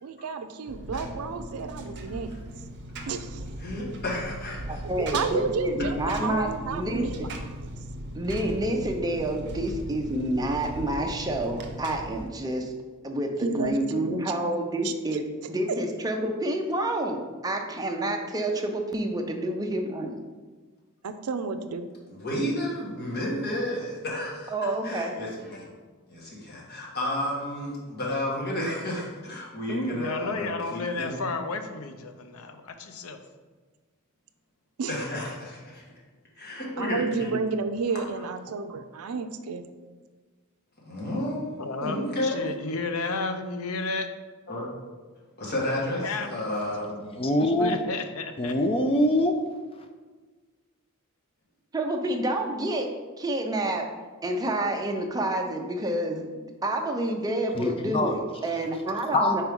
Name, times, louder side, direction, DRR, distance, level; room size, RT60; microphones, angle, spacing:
voice 1, 0.0-2.3 3.1-3.4 5.1-7.3 13.4-14.2 14.8-15.2 15.7-15.8 21.0-21.9 34.8-34.9 36.8-39.6, right 5 dB, 85° right, 9 dB, 0.4 m, -31 dB
Engine, 0.7-12.3, right 1 dB, 55° right, 0.8 m, -38 dB
voice 2, 3.6-4.6 22.1-24.5 24.8-25.7 26.1-31.1 34.9-35.9 36.4-37.3 40.8-42.4 44.5-44.7 45.4-47.1, left 1 dB, 50° left, -4 dB, 1.8 m, -31 dB
voice 3, 4.7-7.1 8.1-12.7 13.0-15.2 15.5-20.1 24.5-25.1 51.7-52.9 53.2-53.9 54.2-59.4, right 1 dB, 15° right, 2 dB, 0.6 m, -28 dB
voice 4, 29.7-33.2 41.6-42.0 42.2-44.1 46.0-46.4 47.6-48.5, left 3 dB, 75° left, 7 dB, 0.6 m, -32 dB
voice 5, 47.2-47.8 48.4-49.4 57.5-58.2 59.1-59.4, left 1 dB, 25° left, 6 dB, 0.4 m, -23 dB
4.7 x 4.6 x 5.3 m, 1.4 s
head